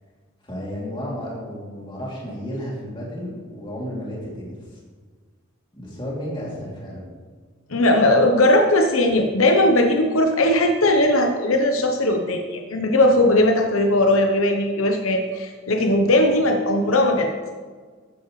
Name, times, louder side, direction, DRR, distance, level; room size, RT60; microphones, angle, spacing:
voice 1, 0.4-4.8 5.7-7.1, equal, 25° left, -5 dB, 2.9 m, -32 dB
voice 2, 7.7-17.3, left 1 dB, 75° left, 3 dB, 0.9 m, -18 dB
13.5 x 9.6 x 3.2 m, 1.5 s
head